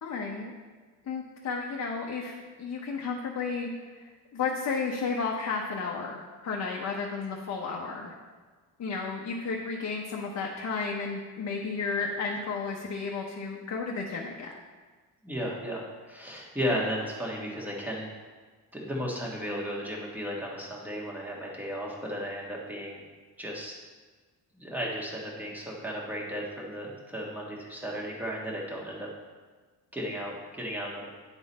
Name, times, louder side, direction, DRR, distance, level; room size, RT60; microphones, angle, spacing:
voice 1, 0.0-0.5 1.1-3.7 4.3-8.1 8.8-14.5, left 4 dB, 40° left, -1 dB, 0.8 m, -33 dB
voice 2, 15.2-18.1 18.7-23.0 23.4-23.7 24.6-29.1 29.9-31.1, equal, 5° right, -3 dB, 1.5 m, -34 dB
9.8 x 3.8 x 4.2 m, 1.4 s
cardioid pair, 115°, 41 cm